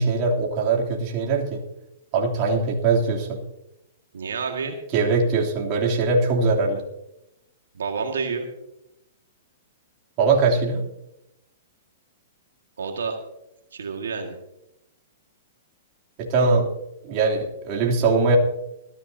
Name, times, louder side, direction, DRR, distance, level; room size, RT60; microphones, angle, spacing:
voice 1, 0.0-1.6 2.1-3.4 4.9-6.8 10.2-10.8 16.2-16.7 17.0-18.4, right 4 dB, 40° right, -2 dB, 3.2 m, -21 dB
voice 2, 4.1-4.8 7.7-8.5 12.8-13.2 13.7-14.4, right 5 dB, 85° right, 3 dB, 1.9 m, -29 dB
20.0 x 14.0 x 2.8 m, 0.87 s
hypercardioid pair, 130°, 0 cm